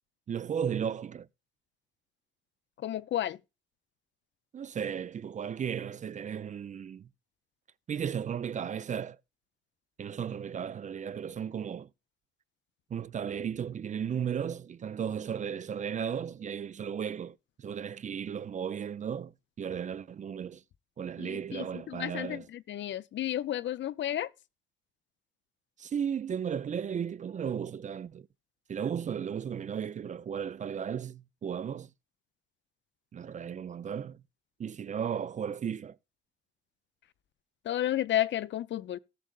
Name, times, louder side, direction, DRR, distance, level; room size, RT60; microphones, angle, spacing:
voice 1, 0.3-1.3 4.5-7.1 7.9-9.2 10.0-11.9 12.9-20.6 21.0-22.5 25.8-28.3 28.7-31.9 33.1-34.2 34.6-36.0, right 8 dB, 35° right, 0.4 m, -35 dB
voice 2, 2.8-3.4 21.2-24.3 37.6-39.0, left 12 dB, 65° left, 0.5 m, -32 dB
18.0 x 6.3 x 2.3 m
cardioid pair, 110°, 21 cm